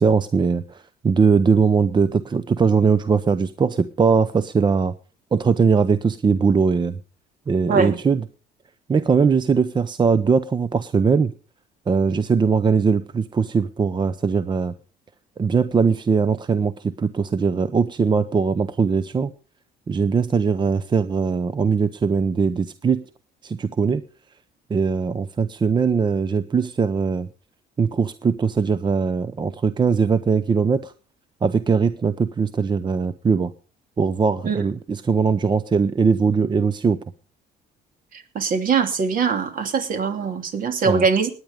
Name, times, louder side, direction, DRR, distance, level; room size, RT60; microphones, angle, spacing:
voice 1, 0.0-4.9 5.3-7.0 7.5-8.2 8.9-11.3 11.9-14.7 15.4-19.3 19.9-23.0 23.4-24.0 24.7-27.3 27.8-30.9 31.4-33.5 34.0-37.0 40.8-41.1, right 5 dB, 25° right, 14 dB, 0.7 m, -20 dB
voice 2, 38.3-41.3, right 5 dB, 55° right, 7 dB, 2.9 m, -22 dB
18.0 x 9.7 x 5.1 m, 0.38 s
cardioid pair, 110°, 17 cm